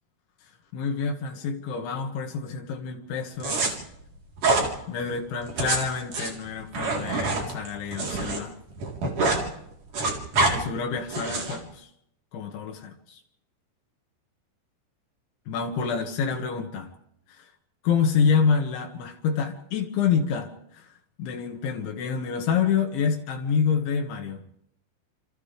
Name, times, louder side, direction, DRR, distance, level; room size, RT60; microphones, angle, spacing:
voice 1, 0.7-3.8 4.9-8.6 10.5-11.9 12.3-13.2 15.5-16.9 17.8-20.9 21.2-24.4, left 6 dB, 65° left, 4 dB, 4.0 m, -27 dB
sound 1, 3.4-3.7 4.4-4.7 5.4-8.4 8.7-9.4 9.7-10.5 11.1-11.6, right 3 dB, 40° right, 4.9 m, -25 dB
28.5 x 28.5 x 3.5 m, 0.75 s
omnidirectional pair, 5.9 m